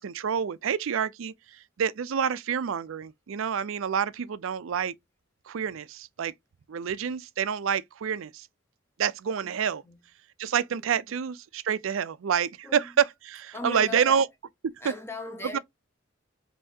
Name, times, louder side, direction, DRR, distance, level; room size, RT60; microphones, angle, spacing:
voice 1, 0.0-4.9 5.5-6.3 6.7-8.5 9.0-9.8 10.4-14.3 15.5-15.6, right 7 dB, 75° right, 0.4 m, -28 dB
voice 2, 10.7-11.2 12.6-13.0 13.5-14.3 14.8-15.6, left 2 dB, 10° left, 0.8 m, -39 dB
5.5 x 2.8 x 2.7 m
head